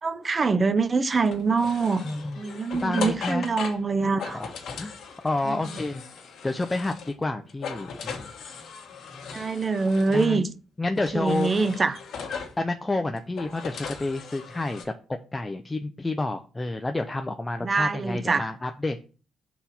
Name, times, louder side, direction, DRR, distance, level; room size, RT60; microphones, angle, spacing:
voice 1, 0.0-2.0 2.4-4.4 5.5-5.6 9.3-10.5 11.1-12.0 17.6-18.5, right 4 dB, 35° right, 0.7 m, -24 dB
sound 1, 1.2-7.2 7.5-10.3 11.0-12.6 13.2-14.8, left 5 dB, 65° left, 1.6 m, -38 dB
voice 2, 2.0-2.4 2.7-3.5 4.3-5.0 5.2-6.0 6.4-8.3 10.1-10.4 10.8-11.5 12.6-19.0, left 2 dB, 15° left, 0.6 m, -29 dB
5.9 x 4.2 x 5.9 m
cardioid pair, 90°, 0 cm